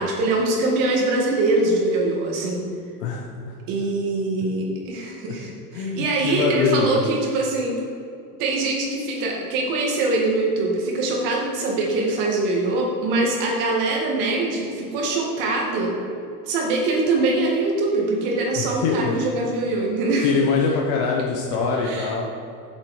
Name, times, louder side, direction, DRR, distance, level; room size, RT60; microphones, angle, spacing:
voice 1, 0.0-2.6 3.7-7.7 8.4-15.9 16.5-20.3 21.8-22.1, right 2 dB, 45° right, -1 dB, 2.0 m, -23 dB
voice 2, 3.0-3.6 5.7-7.0 18.5-19.2 20.2-22.3, left 5 dB, 50° left, -1 dB, 1.0 m, -23 dB
7.5 x 7.4 x 4.8 m, 2.5 s
supercardioid pair, 170°, 46 cm